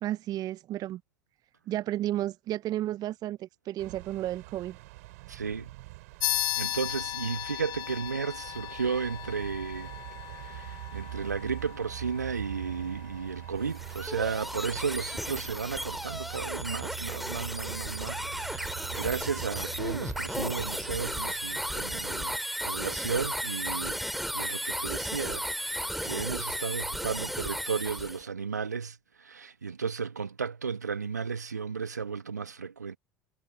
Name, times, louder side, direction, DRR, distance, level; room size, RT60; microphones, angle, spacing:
voice 1, 0.0-1.0 1.7-4.8, right 13 dB, 45° right, 0.8 m, -32 dB
sound 1, 3.8-22.1, right 22 dB, 65° right, 6.9 m, -44 dB
voice 2, 5.3-5.7 6.6-9.9 10.3-22.4 22.6-24.0 24.3-33.0, right 5 dB, 85° right, 1.6 m, -34 dB
sound 2, 6.2-16.2, left 13 dB, 50° left, 2.4 m, -37 dB
sound 3, 13.6-28.2, equal, ahead, 2.8 m, -34 dB
figure-of-eight pair, 65°, 9 cm